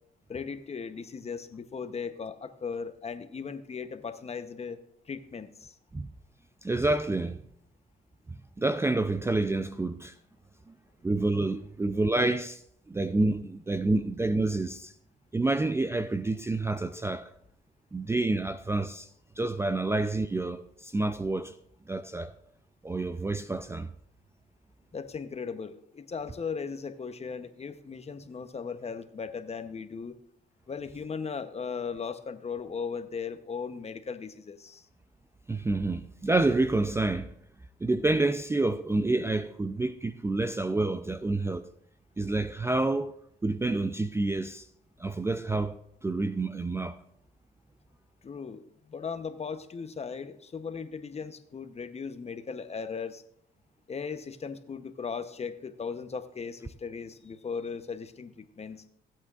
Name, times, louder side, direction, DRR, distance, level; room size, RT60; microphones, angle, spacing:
voice 1, 0.3-4.8 5.1-5.7 24.9-30.2 30.7-34.8 48.2-53.2 53.9-58.8, left 5 dB, 30° left, 0.8 m, -37 dB
voice 2, 6.6-7.4 8.6-10.1 11.0-12.6 12.9-14.9 15.3-17.3 17.9-19.1 19.4-21.5 21.9-22.3 22.8-23.9 35.5-37.3 37.8-41.7 42.2-43.1 43.4-44.6 45.0-47.0, right 2 dB, 15° right, 0.4 m, -28 dB
16.0 x 8.8 x 2.4 m
cardioid pair, 90°, 20 cm